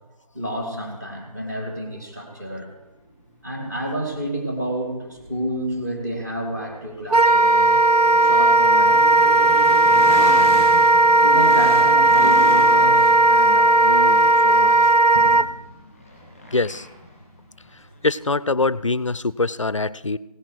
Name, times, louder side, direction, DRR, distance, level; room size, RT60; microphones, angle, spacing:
voice 1, 0.3-2.7 3.4-7.8 8.2-10.6 11.2-15.4, right 1 dB, 25° right, 3 dB, 2.2 m, -30 dB
sound 1, 3.1-19.0, right 1 dB, 5° right, 2.2 m, -37 dB
Wind instrument woodwind instrument, 7.1-15.5, right 2 dB, 85° right, 0.7 m, -15 dB
voice 2, 16.5-16.9 18.0-20.2, left 3 dB, 55° left, 19 dB, 0.4 m, -23 dB
16.5 x 10.0 x 4.7 m, 0.98 s
figure-of-eight pair, 175°, 20 cm